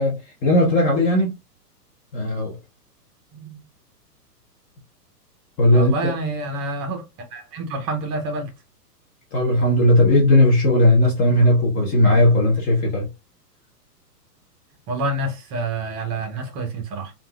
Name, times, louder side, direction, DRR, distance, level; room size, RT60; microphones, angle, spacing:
voice 1, 0.0-1.3 2.1-2.6 5.6-6.0 9.3-13.1, left 1 dB, 20° left, 0.6 m, -17 dB
voice 2, 3.3-3.6 5.7-8.5 14.9-17.1, right 2 dB, 30° right, 0.8 m, -28 dB
3.4 x 2.4 x 2.2 m
hypercardioid pair, 130°, 48 cm